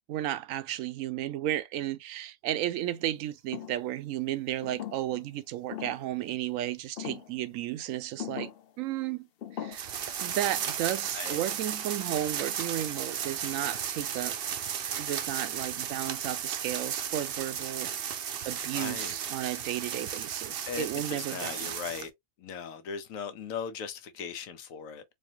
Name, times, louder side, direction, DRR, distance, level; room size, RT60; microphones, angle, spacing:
voice 1, 0.1-8.5 8.8-9.3 9.5-14.3 15.0-17.9 18.4-21.7, right 13 dB, 85° right, 1.0 m, -33 dB
sound 1, 3.5-3.9 4.6-5.3 5.7-6.1 7.0-7.3 8.2-8.6 9.4-9.8, left 10 dB, 60° left, 0.7 m, -39 dB
sound 2, 9.7-22.1, right 8 dB, 60° right, 0.7 m, -34 dB
voice 2, 18.7-19.2 20.7-22.1 22.4-25.0, left 6 dB, 85° left, 1.1 m, -38 dB
4.2 x 2.5 x 2.7 m
omnidirectional pair, 1.3 m